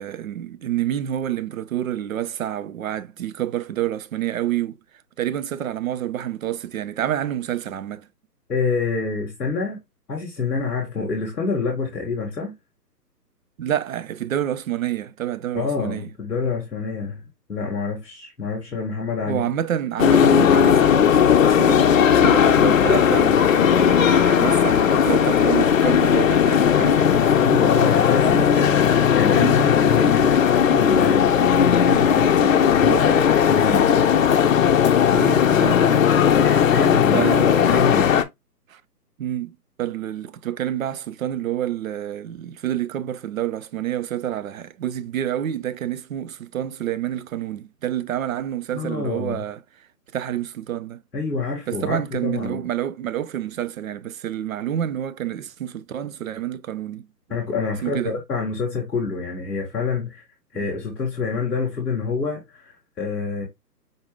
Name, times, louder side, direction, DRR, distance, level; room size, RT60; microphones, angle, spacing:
voice 1, 0.0-4.8 5.2-8.1 13.6-16.1 19.3-27.3 28.2-28.7 29.3-29.6 35.1-36.1 37.1-37.8 38.7-38.8 39.2-49.6 50.1-51.0 51.7-57.1 57.8-58.2, right 11 dB, 55° right, 0.5 m, -28 dB
voice 2, 8.5-9.8 10.1-12.5 15.5-17.2 17.5-19.4 27.4-28.8 29.1-34.1 36.3-37.2 37.6-38.1 48.7-49.4 51.1-52.6 57.3-60.2 60.5-63.4, left 4 dB, 5° left, 0.6 m, -27 dB
sound 1, 20.0-38.2, left 8 dB, 55° left, 0.6 m, -17 dB
5.2 x 2.3 x 3.4 m
hypercardioid pair, 145°, 49 cm